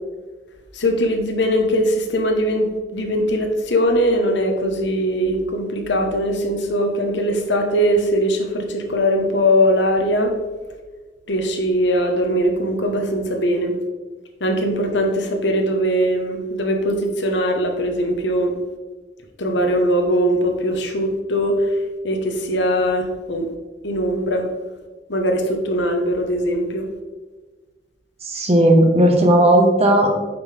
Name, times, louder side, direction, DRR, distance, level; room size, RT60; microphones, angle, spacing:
voice 1, 0.7-10.4 11.3-13.7 14.4-18.6 19.4-21.8 22.0-23.5 23.8-24.5 25.1-26.9, equal, 70° left, 4 dB, 1.1 m, -20 dB
voice 2, 28.2-30.2, right 1 dB, 35° right, 1 dB, 1.3 m, -15 dB
9.2 x 5.4 x 3.4 m, 1.3 s
head